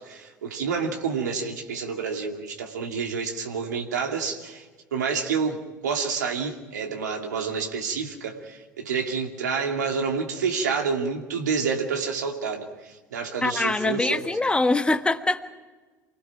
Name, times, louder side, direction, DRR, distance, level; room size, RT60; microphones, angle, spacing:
voice 1, 0.0-4.7 4.9-14.2, right 5 dB, 70° right, 2 dB, 2.5 m, -28 dB
voice 2, 13.4-15.5, left 2 dB, 10° left, 9 dB, 1.3 m, -23 dB
28.5 x 19.0 x 6.0 m, 1.3 s
figure-of-eight pair, 70°, 10 cm